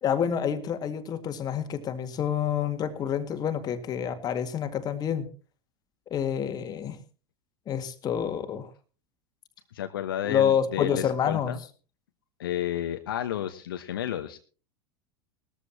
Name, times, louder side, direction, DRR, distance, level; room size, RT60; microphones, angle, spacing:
voice 1, 0.0-5.3 6.1-7.0 7.7-8.7 10.2-11.5, left 8 dB, 30° left, 8 dB, 1.9 m, -28 dB
voice 2, 9.7-11.6 12.4-14.4, left 11 dB, 65° left, 8 dB, 1.1 m, -32 dB
20.0 x 14.0 x 2.8 m, 0.37 s
figure-of-eight pair, 80°, 13 cm